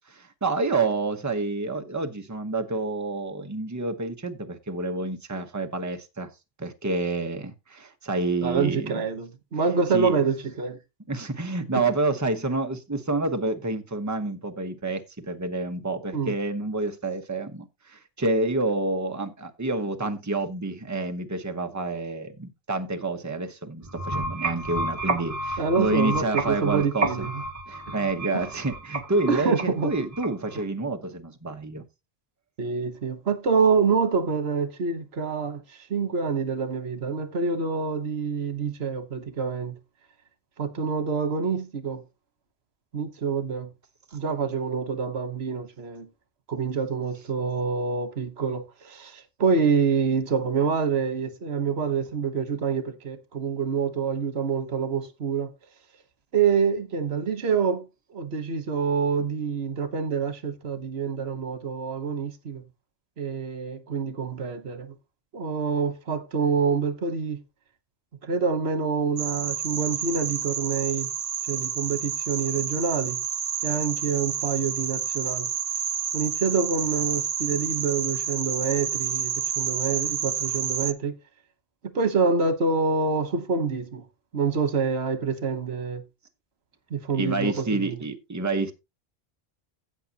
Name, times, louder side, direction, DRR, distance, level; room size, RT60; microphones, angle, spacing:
voice 1, 0.1-6.3 6.6-9.0 9.9-10.2 11.1-27.3 27.7-31.9 87.1-88.7, right 3 dB, 20° right, 1.0 m, -28 dB
voice 2, 8.4-10.8 11.7-11.8 16.1-16.3 25.6-27.3 27.9-28.0 28.3-28.4 29.3-29.9 32.6-35.6 35.9-39.8 40.6-42.0 42.9-43.7 44.1-46.1 46.5-55.5 56.3-57.8 58.1-62.6 63.2-64.9 65.3-67.4 68.2-71.1 71.5-73.2 73.6-75.5 76.1-81.1 81.9-84.0 84.3-86.0 86.9-88.0, right 5 dB, 90° right, 1.4 m, -26 dB
sound 1, 23.8-30.6, right 2 dB, 35° right, 1.6 m, -31 dB
sound 2, 69.2-80.9, right 8 dB, 70° right, 0.9 m, -29 dB
16.5 x 5.7 x 2.9 m
omnidirectional pair, 1.0 m